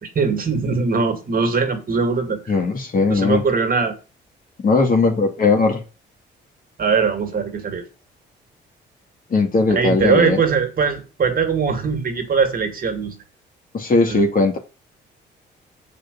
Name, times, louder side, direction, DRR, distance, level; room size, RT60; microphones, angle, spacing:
voice 1, 0.0-2.5 3.1-4.0 6.8-7.8 9.7-13.2 14.1-14.2, right 5 dB, 45° right, 2.3 m, -21 dB
voice 2, 2.5-3.4 4.6-5.8 9.3-10.4 13.7-14.6, left 3 dB, 45° left, 2.4 m, -18 dB
7.2 x 5.0 x 6.9 m
cardioid pair, 90°, 20 cm